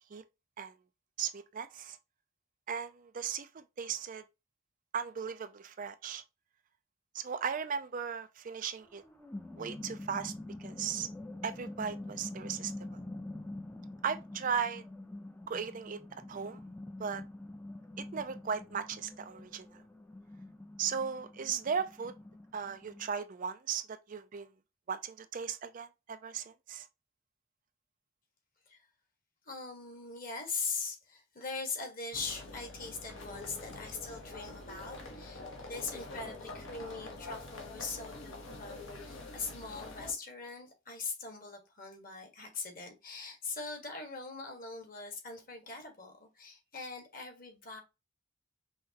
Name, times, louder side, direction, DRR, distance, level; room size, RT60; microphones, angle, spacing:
voice 1, 1.2-2.0 2.7-4.2 4.9-6.2 7.1-9.0 9.6-10.3 10.6-11.1 11.4-12.7 14.0-14.8 15.5-16.0 16.3-16.6 17.0-17.2 18.1-19.7 20.8-22.1 22.5-24.5 24.9-26.9, right 7 dB, 40° right, 0.4 m, -37 dB
sound 1, 8.8-23.1, left 1 dB, 10° left, 0.6 m, -46 dB
voice 2, 29.5-47.8, left 4 dB, 40° left, 1.6 m, -41 dB
sound 2, 32.1-40.1, left 2 dB, 65° left, 1.3 m, -46 dB
5.6 x 3.0 x 2.9 m
head